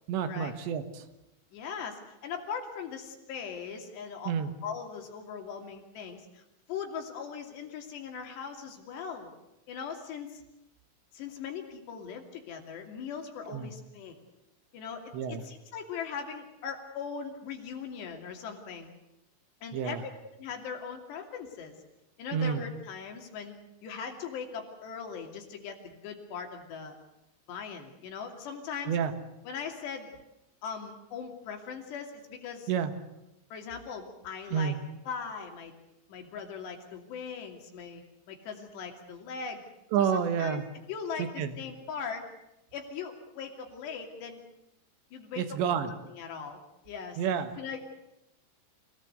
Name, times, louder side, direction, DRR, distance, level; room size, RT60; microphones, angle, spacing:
voice 1, 0.1-1.1 4.3-4.5 13.5-13.7 15.1-15.4 19.7-20.0 22.3-22.6 28.9-29.1 32.7-32.9 34.5-34.8 39.9-40.6 41.2-41.6 45.4-45.9 47.2-47.5, right 8 dB, 85° right, 8 dB, 3.8 m, -29 dB
voice 2, 1.5-4.3 4.6-9.3 9.7-10.4 11.1-14.1 14.7-18.9 19.6-20.0 20.4-21.8 22.2-23.5 23.8-27.0 27.5-28.9 29.5-30.1 30.6-32.7 33.5-34.7 35.1-35.7 36.1-38.0 38.3-39.6 40.1-40.6 40.9-42.3 42.7-44.4 45.1-45.4 45.8-46.6 46.8-47.2 47.6-47.8, left 6 dB, 75° left, 3 dB, 4.9 m, -40 dB
26.0 x 18.0 x 8.1 m, 0.91 s
omnidirectional pair, 5.0 m